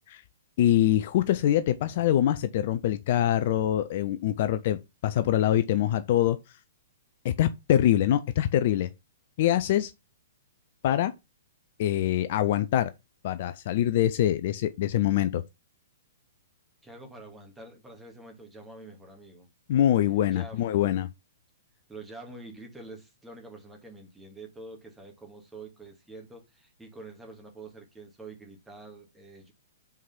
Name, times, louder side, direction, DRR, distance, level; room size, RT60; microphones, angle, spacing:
voice 1, 0.6-4.8 5.0-6.4 7.2-8.9 9.4-9.9 10.8-11.1 11.8-12.9 13.2-15.4 19.7-21.1, left 12 dB, 45° left, 0.5 m, -24 dB
voice 2, 16.8-19.5 20.3-21.0 21.9-29.5, right 2 dB, 5° right, 2.2 m, -46 dB
5.6 x 4.8 x 5.7 m
figure-of-eight pair, 115°, 0 cm